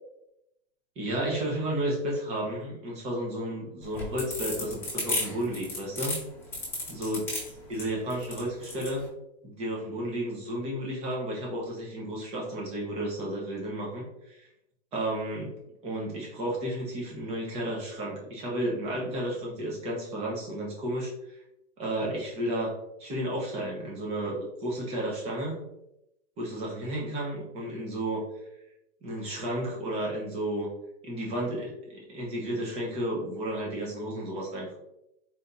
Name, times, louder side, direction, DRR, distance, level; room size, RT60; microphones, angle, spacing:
voice 1, 1.0-6.2 6.9-7.2 7.7-9.0 9.4-14.5 14.9-15.6 15.8-21.1 21.8-22.7 23.0-25.6 26.4-28.3 29.0-30.7 31.0-34.7, right 1 dB, 20° right, -3 dB, 1.0 m, -32 dB
sound 1, 3.8-8.9, left 2 dB, 5° left, 1.2 m, -33 dB
4.2 x 3.3 x 2.6 m, 0.85 s
hypercardioid pair, 150°, 33 cm